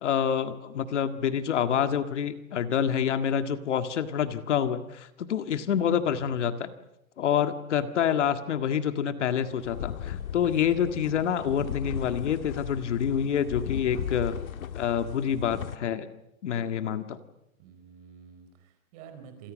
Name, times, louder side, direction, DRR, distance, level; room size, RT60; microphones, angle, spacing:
voice 1, 0.0-6.7 7.2-14.4 14.7-16.1 16.4-17.2, left 8 dB, 55° left, 9 dB, 1.9 m, -27 dB
voice 2, 5.8-6.4 17.6-19.5, right 7 dB, 25° right, 8 dB, 4.3 m, -49 dB
sound 1, 9.5-15.8, left 9 dB, 75° left, 1.8 m, -37 dB
28.0 x 27.0 x 6.4 m, 0.84 s
hypercardioid pair, 180°, 42 cm